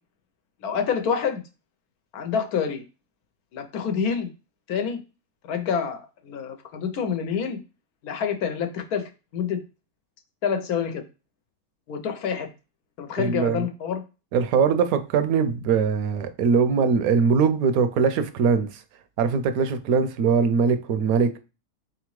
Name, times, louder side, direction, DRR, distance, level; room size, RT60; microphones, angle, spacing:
voice 1, 0.6-1.4 2.1-2.8 3.5-4.3 4.7-5.0 5.4-7.6 8.0-9.6 10.4-11.0 11.9-12.5 13.0-14.0, left 7 dB, 85° left, 1.2 m, -27 dB
voice 2, 13.2-13.6 14.3-18.7 19.2-21.4, right 6 dB, 80° right, 1.0 m, -21 dB
3.9 x 3.4 x 3.1 m
omnidirectional pair, 1.5 m